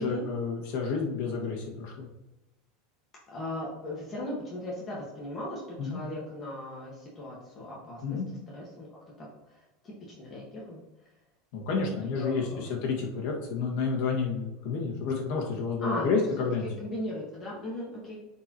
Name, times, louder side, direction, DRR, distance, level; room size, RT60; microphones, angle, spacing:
voice 1, 0.0-2.1 5.8-6.0 8.0-8.3 11.5-16.7, left 5 dB, 65° left, -1 dB, 2.0 m, -30 dB
voice 2, 3.3-8.2 8.5-8.9 9.2-9.3 9.8-10.8 11.8-12.7 15.8-16.1 16.8-18.2, left 1 dB, 25° left, -5 dB, 1.8 m, -37 dB
9.6 x 4.7 x 3.1 m, 0.97 s
supercardioid pair, 145°, 0 cm